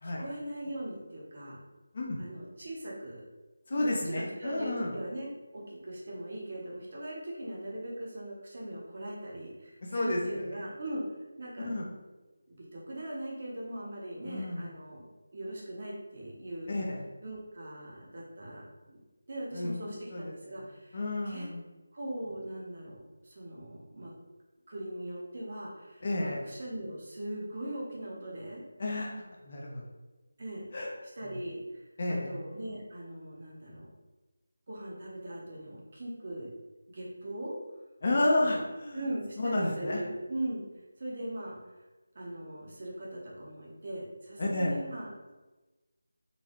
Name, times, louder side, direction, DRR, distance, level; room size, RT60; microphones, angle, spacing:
voice 1, 0.0-1.6 2.2-3.2 3.7-11.0 11.4-11.7 12.5-16.7 17.2-19.0 19.3-21.5 21.9-24.1 24.7-28.6 30.4-30.7 31.2-31.8 32.1-33.9 34.7-36.5 36.9-37.6 38.4-38.6 38.9-40.6 41.0-41.6 42.1-45.1, right 1 dB, 40° right, -4 dB, 0.8 m, -40 dB
voice 2, 3.7-4.9 9.8-10.2 11.6-11.8 14.2-14.7 16.7-17.0 19.5-19.8 20.1-20.3 20.9-21.6 26.0-26.4 28.8-29.1 29.4-29.8 30.7-30.9 31.2-31.3 32.0-32.3 38.0-39.0 39.4-40.0 44.4-44.7, left 1 dB, 35° left, -2 dB, 0.5 m, -31 dB
3.9 x 2.2 x 3.0 m, 1.1 s
figure-of-eight pair, 175°, 0 cm